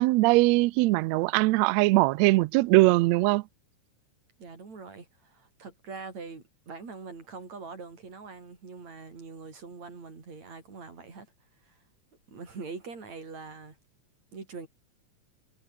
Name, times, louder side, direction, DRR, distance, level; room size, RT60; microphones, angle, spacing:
voice 1, 0.0-3.4, right 20 dB, 80° right, 1.6 m, -21 dB
voice 2, 4.4-11.3 11.6-11.8 12.3-13.8 14.3-14.7, right 4 dB, 60° right, 6.6 m, -43 dB
omnidirectional pair, 3.5 m